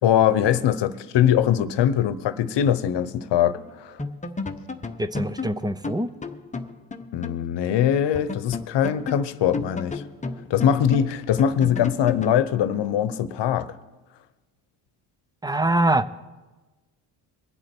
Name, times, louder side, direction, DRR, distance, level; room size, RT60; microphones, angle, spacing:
voice 1, 0.0-4.0 7.1-10.0 10.5-13.7, left 9 dB, 60° left, 0.9 m, -22 dB
sound 1, 3.6-3.7 4.0-7.4 7.7-7.8 8.1-12.4, left 3 dB, 15° left, 0.8 m, -33 dB
voice 2, 5.0-6.1 15.4-16.2, right 1 dB, 10° right, 0.5 m, -23 dB
22.0 x 7.8 x 4.5 m
supercardioid pair, 85°, 48 cm